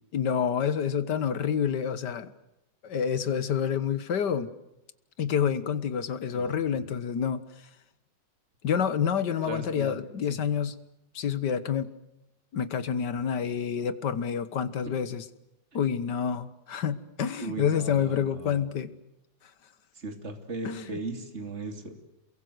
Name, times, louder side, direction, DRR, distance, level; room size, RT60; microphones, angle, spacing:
voice 1, 0.1-2.3 2.8-4.5 5.2-7.4 8.6-10.8 11.2-11.9 12.5-15.3 15.7-18.9 20.7-20.8, left 7 dB, 70° left, 14 dB, 1.9 m, -28 dB
voice 2, 6.3-6.9 9.5-10.4 17.4-18.7 19.9-21.9, right 3 dB, 40° right, 5 dB, 3.2 m, -38 dB
28.5 x 22.5 x 8.0 m, 0.89 s
omnidirectional pair, 1.9 m